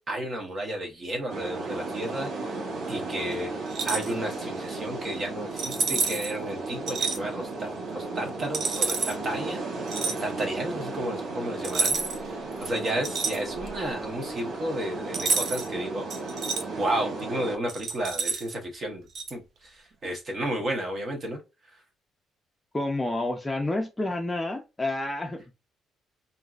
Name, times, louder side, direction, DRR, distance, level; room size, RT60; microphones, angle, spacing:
voice 1, 0.1-2.6 2.9-3.5 3.8-9.6 10.2-16.0 16.8-21.4 21.7-21.8, right 1 dB, 35° right, 1.0 m, -32 dB
sound 1, 1.3-17.6, right 3 dB, 85° right, 1.0 m, -35 dB
sound 2, 3.7-4.1 5.6-6.3 6.9-7.2 8.5-9.1 9.9-10.2 11.6-12.3 12.6-13.8 15.1-15.7 16.1-16.6 17.7-18.5 19.1-19.3, right 4 dB, 55° right, 0.6 m, -29 dB
voice 2, 22.7-25.5, left 2 dB, 15° left, 0.5 m, -29 dB
3.6 x 2.6 x 2.4 m
cardioid pair, 130°, 0 cm